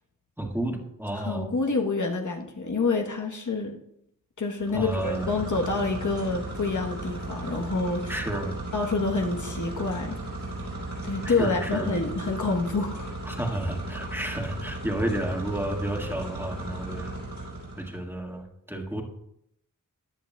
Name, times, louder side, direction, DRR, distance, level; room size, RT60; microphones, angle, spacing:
voice 1, 0.4-1.5 4.7-5.4 8.1-8.5 11.2-11.9 13.2-17.1 17.8-19.0, right 1 dB, 5° right, 1 dB, 1.8 m, -31 dB
voice 2, 1.1-3.8 4.4-8.1 8.7-10.2 11.0-13.1, left 3 dB, 60° left, 2 dB, 1.2 m, -27 dB
sound 1, 4.6-18.0, right 2 dB, 70° right, 4.8 m, -36 dB
14.5 x 10.0 x 2.3 m, 0.75 s
wide cardioid pair, 65°, 33 cm